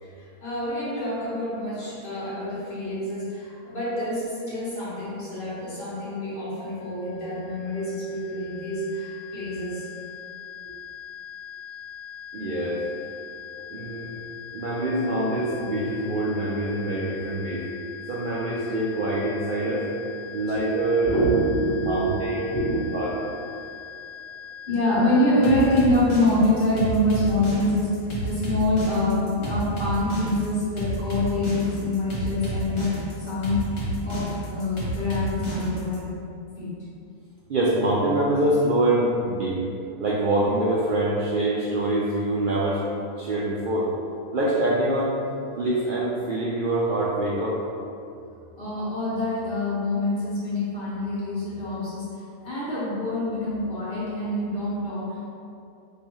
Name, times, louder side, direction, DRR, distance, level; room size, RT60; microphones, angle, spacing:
voice 1, 0.0-9.9 20.5-20.6 21.0-22.9 24.7-27.9 28.2-33.6 34.0-36.1 36.6-36.7 48.6-52.0 52.4-55.2, left 1 dB, 40° left, -10 dB, 1.6 m, -26 dB
sound 1, 6.8-25.9, left 8 dB, 85° left, 1.0 m, -42 dB
voice 2, 12.3-12.8 13.7-14.1 14.5-17.6 18.1-19.9 20.3-21.2 21.8-22.5 22.9-23.1 37.5-39.6 40.0-42.8 43.2-43.9 44.3-45.1 45.6-47.6, right 1 dB, 90° right, -6 dB, 0.4 m, -25 dB
sound 2, 25.4-36.0, right 1 dB, 65° left, 1.5 m, -30 dB
5.4 x 2.7 x 3.0 m, 2.6 s
omnidirectional pair, 1.5 m